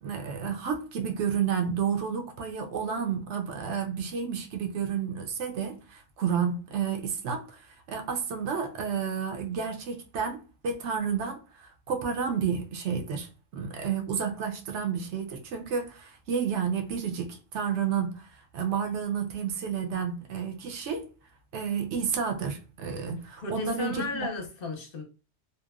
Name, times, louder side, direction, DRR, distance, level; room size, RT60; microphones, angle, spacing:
voice 1, 0.0-18.3 18.5-21.1 21.5-24.3, right 7 dB, 70° right, 0.9 m, -31 dB
voice 2, 23.4-25.0, left 3 dB, 55° left, 0.8 m, -34 dB
2.8 x 2.1 x 2.3 m
omnidirectional pair, 1.2 m